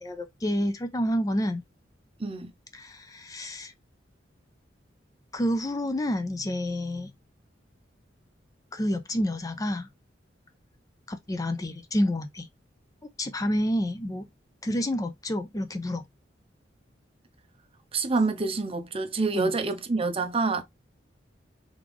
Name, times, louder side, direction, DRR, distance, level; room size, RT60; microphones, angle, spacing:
voice 1, 0.0-1.6 2.7-3.7 5.3-7.1 8.7-9.9 11.1-12.5 13.2-14.3 14.6-16.0 19.3-19.5, equal, 20° left, 0.4 m, -29 dB
voice 2, 2.2-2.5 17.9-20.6, right 3 dB, 30° right, 0.6 m, -27 dB
3.6 x 3.2 x 3.5 m
head